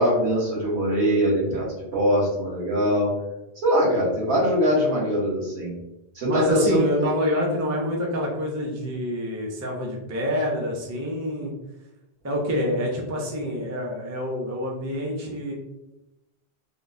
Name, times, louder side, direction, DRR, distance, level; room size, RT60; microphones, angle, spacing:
voice 1, 0.0-1.6 1.9-3.1 3.6-5.7 6.1-7.1, equal, 75° right, -5 dB, 1.3 m, -22 dB
voice 2, 6.2-11.5 12.2-15.5, left 1 dB, 25° right, -1 dB, 0.3 m, -27 dB
3.6 x 2.1 x 2.5 m, 0.94 s
omnidirectional pair, 1.1 m